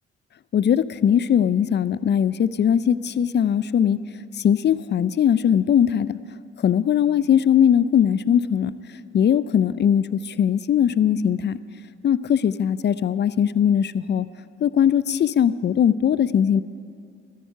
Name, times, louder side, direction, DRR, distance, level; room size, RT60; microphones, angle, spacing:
voice 1, 0.5-4.0 4.3-6.2 6.6-8.7 9.1-11.6 12.0-14.3 14.6-16.6, left 9 dB, 35° left, 17 dB, 0.4 m, -20 dB
12.5 x 9.5 x 5.6 m, 2.3 s
supercardioid pair, 60°, 30 cm